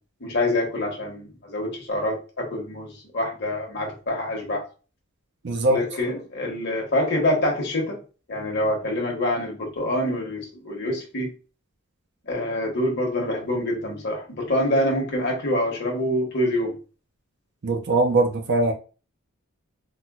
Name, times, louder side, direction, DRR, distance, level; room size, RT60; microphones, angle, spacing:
voice 1, 0.2-4.6 5.7-8.0 8.3-11.3 12.3-16.8, left 1 dB, 50° left, 1.1 m, -26 dB
voice 2, 5.4-5.8 17.6-18.7, right 2 dB, 55° right, 0.5 m, -21 dB
4.2 x 2.2 x 2.3 m
head